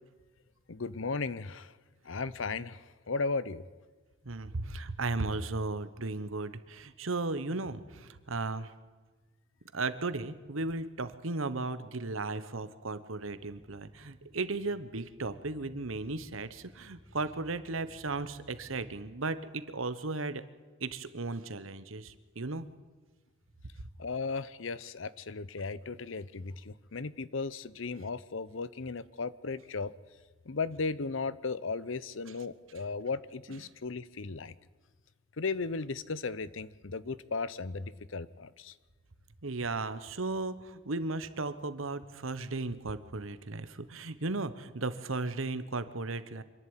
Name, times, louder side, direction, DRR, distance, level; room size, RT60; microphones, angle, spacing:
voice 1, 0.7-1.7 2.1-2.8 3.1-3.6 24.0-29.9 30.5-34.5 35.4-38.7, left 4 dB, 75° left, 17 dB, 0.8 m, -36 dB
voice 2, 4.2-8.7 9.7-20.4 20.8-22.7 33.5-33.6 39.4-46.4, right 3 dB, 85° right, 13 dB, 1.2 m, -35 dB
sound 1, 13.1-19.2, equal, 25° left, 5.2 m, -58 dB
26.0 x 11.0 x 9.0 m, 1.4 s
head